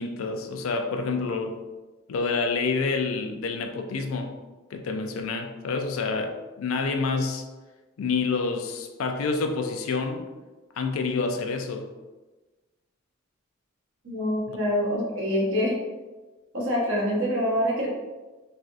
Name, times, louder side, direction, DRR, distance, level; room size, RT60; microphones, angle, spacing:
voice 1, 0.0-1.6 2.1-4.3 4.7-7.5 8.0-10.2 10.8-11.9 14.5-14.6, left 4 dB, 90° left, 5 dB, 0.4 m, -28 dB
voice 2, 14.0-15.8 16.5-17.9, equal, 65° right, -4 dB, 0.9 m, -25 dB
3.3 x 2.5 x 2.4 m, 1.2 s
head